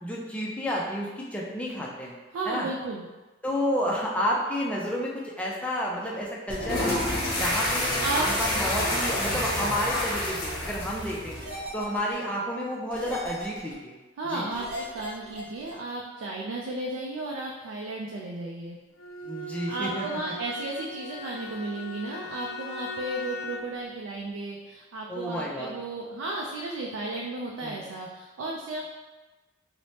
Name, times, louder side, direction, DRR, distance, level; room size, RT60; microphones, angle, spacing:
voice 1, 0.0-2.2 2.5-2.7 3.4-7.0 7.3-11.4 11.7-14.0 14.2-14.5 19.2-20.1 25.1-25.8 27.6-27.8, equal, 5° left, -3 dB, 0.4 m, -31 dB
voice 2, 2.3-3.0 8.0-8.2 14.2-18.8 19.7-28.9, right 2 dB, 80° right, -2 dB, 0.3 m, -34 dB
sound 1, 6.5-11.6, left 1 dB, 50° left, 0.7 m, -28 dB
sound 2, 6.5-6.8 8.1-8.4 9.7-10.0 11.3-12.1 12.9-13.7 14.5-15.7, right 1 dB, 45° right, 0.7 m, -39 dB
Bowed string instrument, 19.0-23.8, left 2 dB, 85° left, 0.3 m, -39 dB
3.2 x 2.0 x 2.7 m, 1.2 s
head